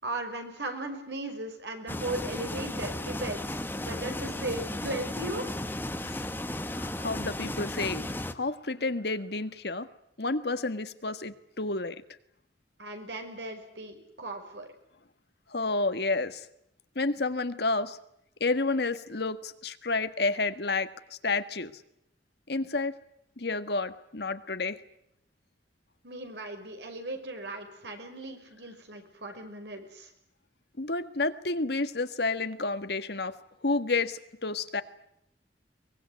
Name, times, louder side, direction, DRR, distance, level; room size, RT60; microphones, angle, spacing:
voice 1, 0.0-5.5 12.8-14.7 26.0-30.1, right 2 dB, 75° right, 5 dB, 5.6 m, -37 dB
sound 1, 1.9-8.3, left 1 dB, 10° left, 1.3 m, -35 dB
voice 2, 6.7-8.1 8.3-9.9 10.2-12.0 15.5-16.5 16.9-18.0 18.4-21.7 22.5-22.9 23.4-24.8 30.8-33.3 33.6-34.8, left 3 dB, 65° left, 10 dB, 1.6 m, -30 dB
23.5 x 20.5 x 9.5 m, 0.75 s
head